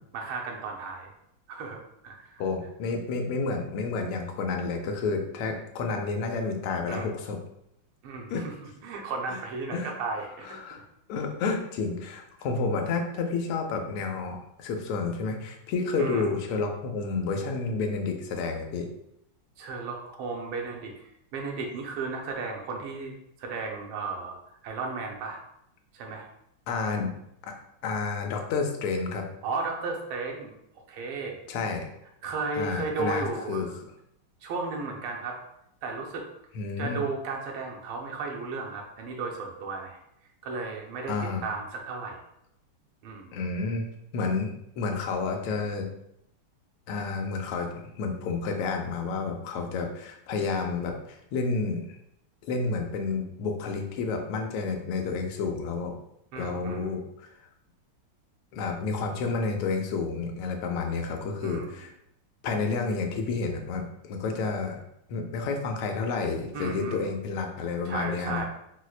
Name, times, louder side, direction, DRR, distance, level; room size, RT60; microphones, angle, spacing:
voice 1, 0.1-1.1 1.5-2.4 6.9-7.1 8.0-10.8 16.0-16.4 19.6-24.4 24.6-25.4 25.9-26.3 29.4-30.5 30.9-31.4 32.2-33.7 34.4-35.4 35.8-36.3 36.8-40.0 40.4-41.1 41.4-42.2 43.0-43.4 56.3-56.9 61.4-61.8 66.5-67.1 67.8-68.5, right 4 dB, 80° right, 1 dB, 1.5 m, -34 dB
voice 2, 2.4-7.4 8.3-8.4 9.3-9.4 9.7-9.9 10.4-10.8 11.1-18.9 26.7-27.1 27.4-27.5 27.8-29.2 31.5-31.9 32.5-33.7 36.5-37.0 41.1-41.4 43.3-43.9 44.1-45.9 46.9-51.8 52.5-55.9 56.4-57.3 58.5-61.9 62.4-64.8 65.1-68.4, left 4 dB, 85° left, 3 dB, 1.5 m, -30 dB
4.4 x 2.1 x 2.4 m, 0.78 s
omnidirectional pair, 2.4 m